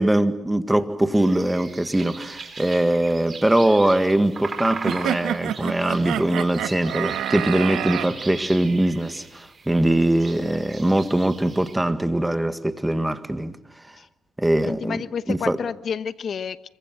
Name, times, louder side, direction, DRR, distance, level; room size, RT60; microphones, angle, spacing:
voice 1, 0.0-13.6 14.4-15.0 15.3-15.6, right 1 dB, 10° right, 10 dB, 1.7 m, -22 dB
sound 1, 1.1-11.8, right 4 dB, 35° right, 4.8 m, -39 dB
sound 2, 4.8-8.1, right 11 dB, 85° right, 1.4 m, -28 dB
voice 2, 14.7-16.7, left 7 dB, 55° left, 13 dB, 1.0 m, -30 dB
26.0 x 23.5 x 7.7 m, 0.88 s
cardioid pair, 90°, 0 cm